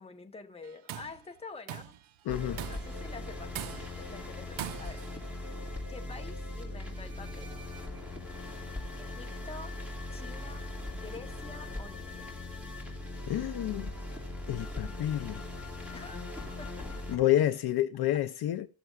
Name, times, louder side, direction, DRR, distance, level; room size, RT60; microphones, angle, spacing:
voice 1, 0.0-2.0 2.4-5.1 5.9-7.5 9.0-9.7 10.1-12.3 15.9-17.0, left 4 dB, 15° left, 0.9 m, -48 dB
Tools, 0.6-1.2 1.7-2.0 2.6-3.0 3.5-4.1 4.6-5.1, right 11 dB, 90° right, 0.7 m, -41 dB
voice 2, 2.3-2.6 13.3-13.9 14.5-15.4 17.1-18.7, left 12 dB, 55° left, 0.5 m, -29 dB
sound 1, 2.3-17.2, left 2 dB, 5° right, 2.5 m, -40 dB
16.0 x 6.7 x 2.3 m
cardioid pair, 145°, 47 cm